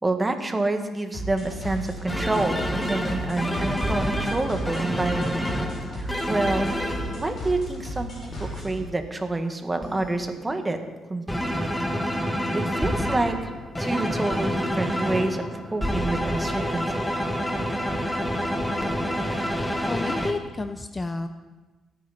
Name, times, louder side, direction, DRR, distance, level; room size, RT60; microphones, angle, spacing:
voice 1, 0.0-5.4 6.0-6.7 7.1-10.8 11.1-11.8 12.5-13.5 13.8-17.0, right 2 dB, 20° right, 6 dB, 1.7 m, -28 dB
sound 1, 1.1-8.8, equal, 45° left, 6.5 m, -35 dB
sound 2, 2.0-7.6 8.3-8.9 9.8-10.5 11.3-20.3, equal, 5° left, 1.7 m, -28 dB
voice 2, 19.6-21.3, left 3 dB, 25° left, 8 dB, 0.7 m, -31 dB
24.5 x 9.4 x 4.3 m, 1.2 s
cardioid pair, 90°, 0 cm